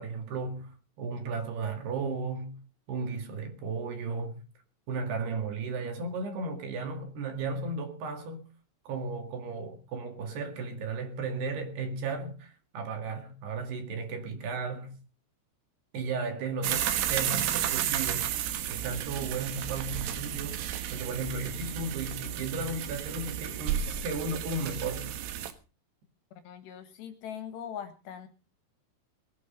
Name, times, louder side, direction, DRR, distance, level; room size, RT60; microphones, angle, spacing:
voice 1, 0.0-2.6 2.9-4.4 4.9-8.4 8.9-15.0 15.9-18.3 18.7-25.2, right 3 dB, 60° right, 3.9 m, -35 dB
sound 1, 16.6-25.5, right 11 dB, 80° right, 4.0 m, -32 dB
voice 2, 26.4-28.3, left 8 dB, 70° left, 3.3 m, -41 dB
21.0 x 9.7 x 5.4 m
omnidirectional pair, 5.7 m